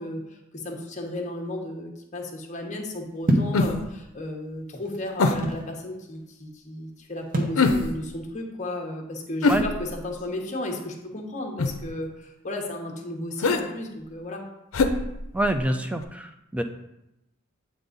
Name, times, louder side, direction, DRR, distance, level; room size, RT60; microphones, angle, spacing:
voice 1, 0.0-14.4, left 1 dB, 35° left, 1 dB, 1.0 m, -34 dB
sound 1, 3.3-3.6 4.5-5.7 7.3-7.6, right 1 dB, 40° right, 0.8 m, -25 dB
sound 2, 3.5-4.0 5.2-5.5 7.6-8.1 9.4-10.2 11.6-11.9 13.4-13.6 14.7-15.7 16.0-16.1, left 3 dB, 80° left, 0.6 m, -24 dB
voice 2, 15.3-16.6, right 1 dB, 5° right, 7 dB, 0.3 m, -26 dB
7.9 x 3.9 x 3.9 m, 0.89 s
head